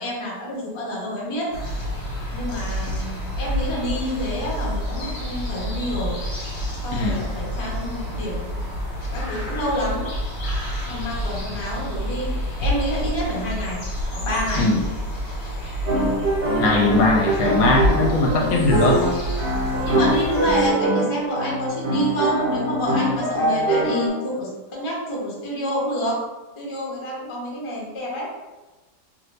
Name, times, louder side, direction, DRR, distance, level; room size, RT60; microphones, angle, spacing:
voice 1, 0.0-1.5 2.3-6.1 6.8-8.4 9.1-10.0 10.9-12.3 12.6-13.8 14.1-14.7 17.4-17.6 18.2-18.6 19.8-26.2 26.6-28.3, equal, 35° left, -5 dB, 0.4 m, -28 dB
sound 1, 1.5-20.7, equal, 55° left, 1.1 m, -28 dB
sound 2, 15.9-24.1, right 1 dB, 65° right, 1.4 m, -23 dB
voice 2, 16.6-19.0, left 2 dB, 75° left, 0 dB, 1.1 m, -20 dB
2.8 x 2.5 x 3.2 m, 1.1 s
omnidirectional pair, 1.9 m